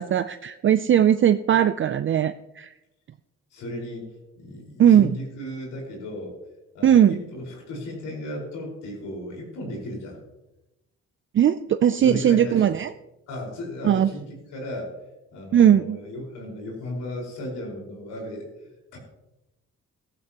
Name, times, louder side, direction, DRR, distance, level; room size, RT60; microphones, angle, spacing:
voice 1, 0.0-2.7 4.8-5.2 6.8-7.2 11.3-12.9 13.8-14.1 15.5-16.0, right 10 dB, 40° right, 11 dB, 0.5 m, -19 dB
voice 2, 3.5-6.4 6.7-10.2 12.0-12.8 13.3-14.9 15.3-18.5 18.9-19.0, left 1 dB, 90° left, 0 dB, 4.9 m, -35 dB
14.5 x 14.0 x 3.0 m, 0.95 s
cardioid pair, 90°, 30 cm